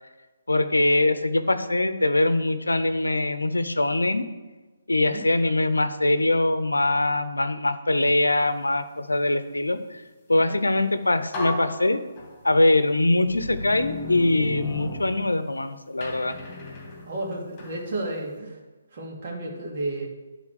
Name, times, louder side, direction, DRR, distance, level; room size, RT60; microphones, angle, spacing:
voice 1, 0.5-4.3 4.9-10.0 10.3-12.0 12.4-16.4, left 2 dB, 85° left, 11 dB, 0.7 m, -22 dB
sound 1, 10.8-10.9 11.3-12.6 13.3-15.6 16.0-17.8, left 2 dB, 25° left, 2.7 m, -35 dB
voice 2, 17.0-18.6 18.9-20.1, right 2 dB, 45° right, -2 dB, 2.5 m, -32 dB
10.5 x 4.0 x 6.4 m, 1.2 s
figure-of-eight pair, 140°, 0 cm